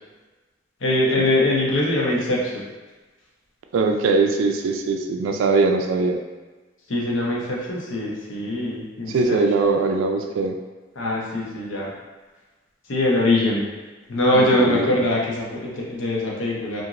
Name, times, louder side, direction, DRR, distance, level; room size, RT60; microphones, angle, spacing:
voice 1, 0.8-2.6 6.9-9.4 11.0-11.9 12.9-13.6 14.1-16.8, left 1 dB, 80° left, -4 dB, 0.7 m, -22 dB
voice 2, 3.7-6.2 9.1-10.6 14.3-14.9, right 3 dB, 85° right, 4 dB, 0.3 m, -21 dB
2.9 x 2.5 x 2.4 m, 1.3 s
head